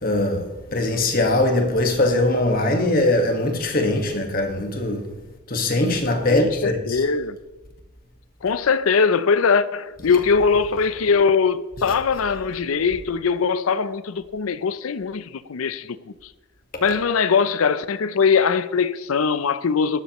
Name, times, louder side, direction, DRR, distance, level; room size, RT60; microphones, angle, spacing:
voice 1, 0.0-5.0 5.5-7.0, left 2 dB, 40° left, 1.6 m, -21 dB
voice 2, 6.3-7.4 8.4-16.1 16.8-20.0, left 5 dB, 85° left, 0.5 m, -21 dB
12.5 x 11.5 x 3.1 m
head